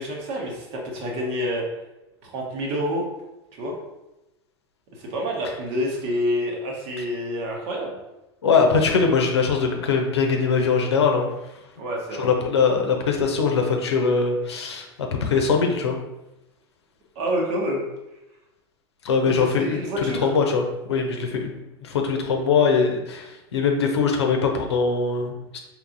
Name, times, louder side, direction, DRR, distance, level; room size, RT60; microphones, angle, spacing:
voice 1, 0.0-1.7 2.2-3.0 3.6-3.8 5.0-8.0 11.8-12.3 17.1-17.8 19.2-20.3, equal, 50° right, -1 dB, 1.2 m, -28 dB
voice 2, 8.4-11.3 12.2-16.0 19.0-25.6, left 5 dB, 75° left, 3 dB, 0.7 m, -22 dB
4.6 x 3.2 x 2.6 m, 0.95 s
figure-of-eight pair, 85°, 14 cm